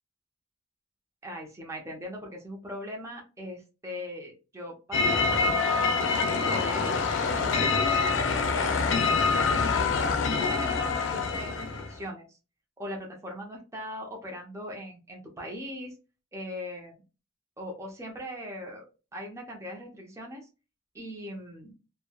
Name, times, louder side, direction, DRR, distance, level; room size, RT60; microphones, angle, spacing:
voice 1, 1.2-6.9 7.3-9.0 9.3-12.4 12.8-15.9 16.3-16.9 17.6-18.8 19.1-20.5 20.9-21.7, equal, 15° right, -1 dB, 0.6 m, -40 dB
sound 1, 4.9-12.0, left 4 dB, 75° left, 0.4 m, -25 dB
3.1 x 2.1 x 2.2 m, 0.31 s
head